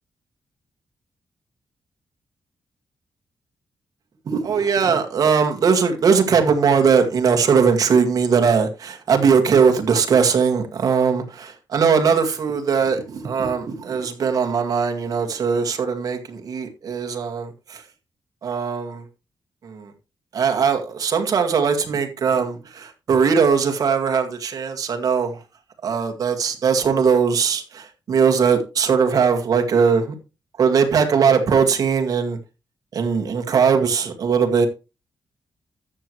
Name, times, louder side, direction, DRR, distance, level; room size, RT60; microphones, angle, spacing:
voice 1, 4.3-17.8 18.4-19.0 19.6-19.9 20.3-25.4 25.8-30.2 30.6-32.4 32.9-34.7, right 6 dB, 55° right, 1.9 m, -20 dB
13.0 x 7.9 x 3.1 m
wide cardioid pair, 175°, 7 cm